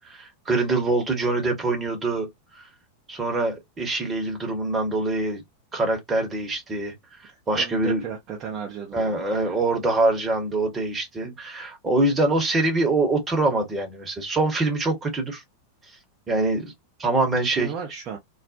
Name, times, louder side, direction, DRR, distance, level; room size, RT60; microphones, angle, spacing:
voice 1, 0.0-2.3 2.5-2.7 3.1-5.4 5.7-6.9 7.2-8.0 8.9-15.4 16.3-16.7 17.0-17.7, right 2 dB, 20° right, 1.0 m, -24 dB
voice 2, 7.3-9.6 11.2-11.4 17.4-18.2, right 7 dB, 35° right, 0.6 m, -35 dB
2.3 x 2.1 x 2.6 m
figure-of-eight pair, 90°, 0 cm